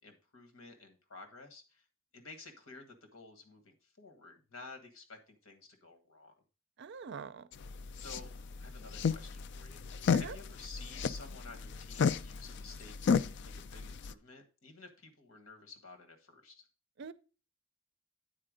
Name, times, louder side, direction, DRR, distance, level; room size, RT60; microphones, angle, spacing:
voice 1, 0.0-1.8 2.1-6.3 8.0-8.3 8.6-16.7, left 3 dB, 90° left, 1.5 m, -53 dB
voice 2, 6.8-7.5 10.1-10.4 17.0-17.1, right 5 dB, 55° right, 0.5 m, -44 dB
sound 1, 7.5-14.1, left 6 dB, 55° left, 0.3 m, -33 dB
8.8 x 4.4 x 5.0 m
head